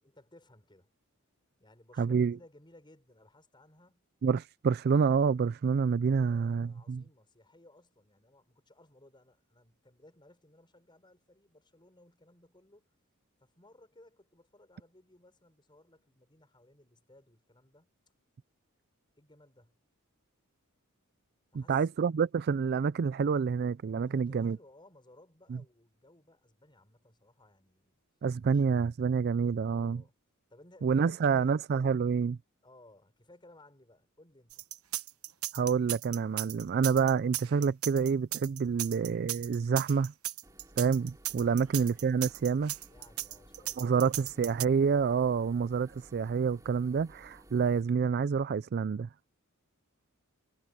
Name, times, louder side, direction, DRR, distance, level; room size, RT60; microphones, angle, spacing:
voice 1, 0.0-0.9 1.6-4.1 6.0-12.9 13.4-17.9 19.2-19.8 21.5-21.9 24.0-28.0 28.5-28.6 29.6-30.1 30.5-31.5 32.6-34.7 41.5-41.9 42.9-43.9 45.4-45.7, left 1 dB, 20° left, 6.7 m, -60 dB
voice 2, 2.0-2.4 4.2-7.0 21.5-24.6 25.5-25.6 28.2-30.0 30.8-32.4 35.5-40.1 40.8-42.7 43.8-49.1, right 6 dB, 50° right, 0.4 m, -28 dB
sound 1, 34.5-44.7, right 14 dB, 90° right, 1.1 m, -36 dB
sound 2, 40.4-47.8, right 1 dB, 15° right, 3.4 m, -57 dB
head